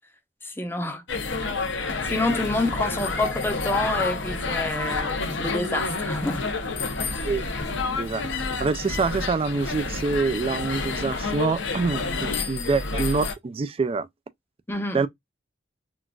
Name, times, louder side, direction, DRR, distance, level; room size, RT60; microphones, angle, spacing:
voice 1, 0.4-1.0 1.4-1.5 2.0-6.5 14.7-15.0, left 2 dB, 10° left, 0.7 m, -28 dB
sound 1, 1.1-13.3, left 3 dB, 85° left, 0.8 m, -29 dB
voice 2, 7.9-14.1 14.9-15.1, right 4 dB, 30° right, 0.3 m, -26 dB
3.8 x 2.4 x 2.3 m
head